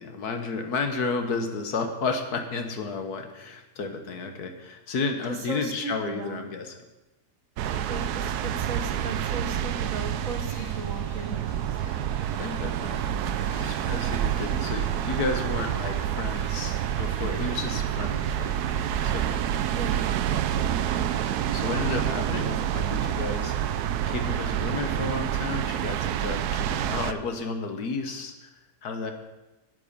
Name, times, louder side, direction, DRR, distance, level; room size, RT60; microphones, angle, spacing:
voice 1, 0.0-6.8 12.3-13.0 13.5-19.4 21.5-28.5 28.8-29.1, left 4 dB, 65° left, 6 dB, 1.6 m, -32 dB
voice 2, 5.3-6.5 7.9-11.8 19.7-20.1, right 3 dB, 55° right, 4 dB, 1.6 m, -36 dB
sound 1, 7.6-21.9, left 4 dB, 90° left, 1.9 m, -49 dB
sound 2, 7.6-27.1, right 10 dB, 75° right, 1.1 m, -28 dB
9.8 x 8.3 x 6.8 m, 1.0 s
omnidirectional pair, 1.8 m